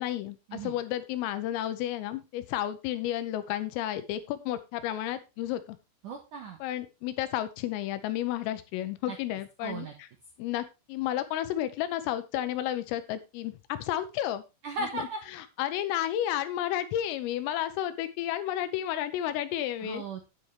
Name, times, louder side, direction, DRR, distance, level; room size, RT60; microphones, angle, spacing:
voice 1, 0.0-5.8 6.6-10.1 10.4-14.4 14.8-15.1 15.3-20.0, left 12 dB, 80° left, 11 dB, 3.5 m, -32 dB
voice 2, 6.0-6.6 9.1-9.2 9.6-9.9 14.6-15.2 19.8-20.3, right 3 dB, 80° right, 3 dB, 1.8 m, -36 dB
9.5 x 9.0 x 3.4 m, 0.26 s
omnidirectional pair, 6.0 m